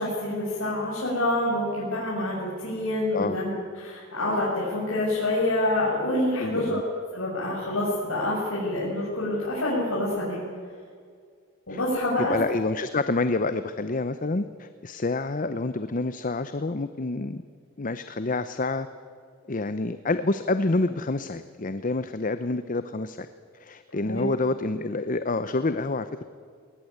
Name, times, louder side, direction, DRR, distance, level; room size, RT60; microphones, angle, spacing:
voice 1, 0.0-3.5 3.8-6.8 7.1-10.4 11.7-12.3 24.1-24.3, left 1 dB, 70° left, -6 dB, 6.4 m, -27 dB
voice 2, 6.4-6.8 11.7-11.8 12.2-17.4 17.8-18.9 19.5-23.3 23.6-26.2, left 3 dB, 40° left, 11 dB, 0.7 m, -28 dB
21.0 x 19.0 x 9.6 m, 2.1 s
head